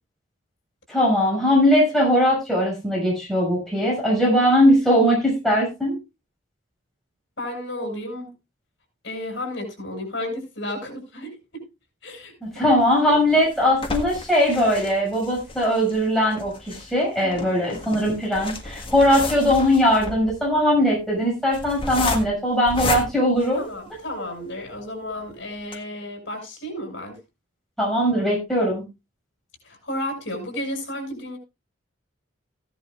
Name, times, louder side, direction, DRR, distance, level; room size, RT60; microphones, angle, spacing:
voice 1, 0.9-6.0 12.4-23.7 27.8-28.8, equal, ahead, 6.4 m, -20 dB
voice 2, 7.4-8.3 9.0-11.6 12.0-12.8 17.2-17.6 23.5-27.2 29.6-31.4, left 1 dB, 65° left, 6.5 m, -33 dB
sound 1, 12.8-24.2 24.7-24.8 25.1-25.2 25.6-25.8, left 3 dB, 25° left, 1.6 m, -33 dB
16.0 x 11.0 x 2.5 m
head